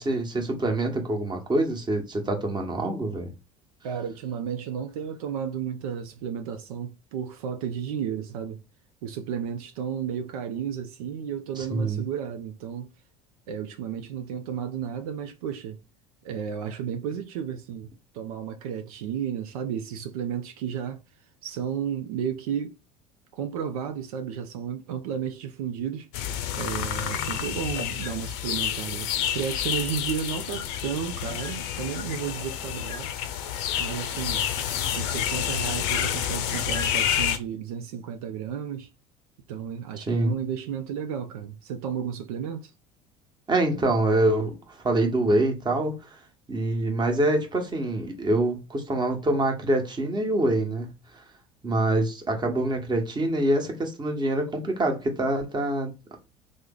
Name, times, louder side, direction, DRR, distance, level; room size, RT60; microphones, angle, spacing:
voice 1, 0.0-3.3 11.6-12.0 40.1-40.3 43.5-46.1 46.5-50.9 51.6-55.9, right 1 dB, 25° right, 1.1 m, -25 dB
voice 2, 3.8-8.6 9.0-12.9 13.5-15.8 16.2-21.0 21.4-22.8 23.3-33.2 33.8-34.4 35.0-38.9 39.5-42.7, right 8 dB, 75° right, 0.5 m, -33 dB
sound 1, 26.1-37.4, left 10 dB, 65° left, 0.6 m, -29 dB
3.1 x 2.0 x 3.7 m
hypercardioid pair, 75°, 19 cm